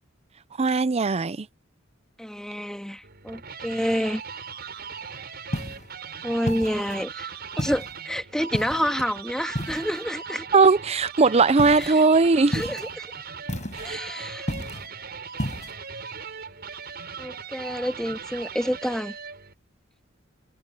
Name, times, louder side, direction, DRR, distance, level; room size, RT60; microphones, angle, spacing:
voice 1, 0.6-1.5 10.5-12.7 13.8-14.0, right 4 dB, 30° right, 0.5 m, -19 dB
voice 2, 2.2-4.2 6.2-7.3 7.6-10.5 11.8-12.0 12.5-13.1 13.8-14.5 17.2-19.1, equal, 5° left, 2.3 m, -28 dB
sound 1, 3.0-19.5, right 6 dB, 50° right, 6.9 m, -39 dB
sound 2, 5.5-5.9 6.5-7.0 7.6-8.0 8.5-9.0 9.6-10.1 11.6-11.9 12.5-12.9 13.5-14.0 14.5-14.9 15.4-15.7, equal, 35° left, 6.2 m, -32 dB
head